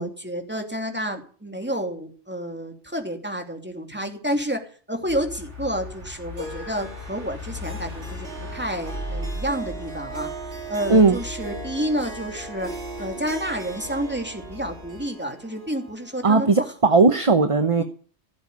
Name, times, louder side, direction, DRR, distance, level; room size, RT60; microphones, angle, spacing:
voice 1, 0.0-10.3 10.7-12.7 13.0-16.5 16.9-17.0 17.8-17.9, equal, 10° right, 4 dB, 2.9 m, -30 dB
sound 1, 5.1-15.0, left 2 dB, 85° right, 3.7 m, -38 dB
Harp, 6.4-16.9, right 3 dB, 65° right, 3.6 m, -39 dB
voice 2, 16.2-17.8, right 3 dB, 30° right, 9 dB, 1.0 m, -17 dB
16.5 x 8.0 x 9.4 m, 0.42 s
omnidirectional pair, 1.1 m